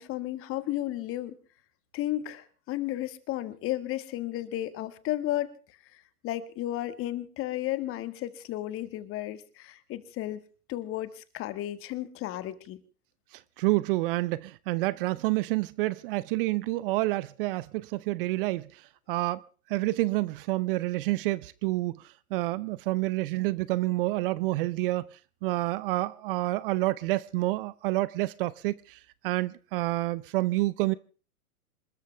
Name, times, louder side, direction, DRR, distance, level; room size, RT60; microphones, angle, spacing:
voice 1, 0.0-1.3 1.9-10.4 10.7-12.8, left 14 dB, 30° left, 1.8 m, -33 dB
voice 2, 13.3-19.4 19.7-30.9, right 19 dB, 40° right, 0.7 m, -29 dB
27.0 x 13.0 x 3.4 m
hypercardioid pair, 125°, 44 cm